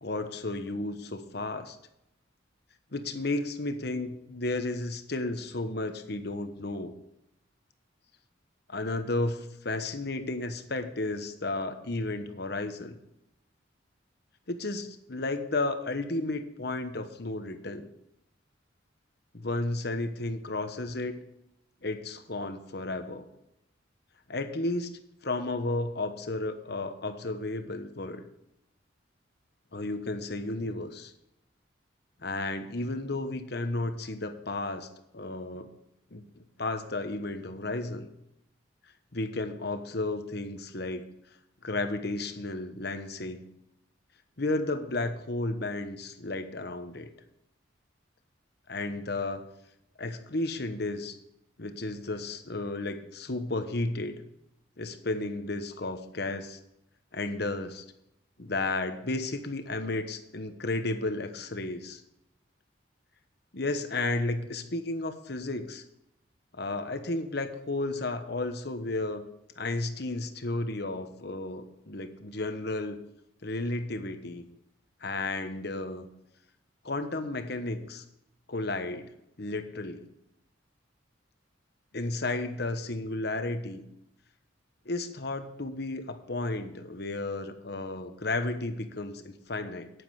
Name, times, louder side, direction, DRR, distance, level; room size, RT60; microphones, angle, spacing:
voice 1, 0.0-1.8 2.9-6.9 8.7-13.0 14.5-17.9 19.3-21.2 21.8-23.3 24.3-24.9 25.2-28.3 29.7-31.1 32.2-34.9 35.1-35.7 36.1-36.2 36.6-38.1 39.1-41.0 41.6-43.4 44.4-47.1 48.7-49.4 50.0-51.2 51.6-54.1 54.8-56.6 57.1-57.8 58.4-62.0 63.5-65.8 66.5-69.3 69.6-73.0 73.4-74.5 75.0-76.1 76.8-78.0 78.5-79.1 79.4-80.1 81.9-83.8 84.8-89.9, left 2 dB, 55° left, 8 dB, 1.1 m, -33 dB
9.8 x 9.6 x 4.8 m, 0.83 s
head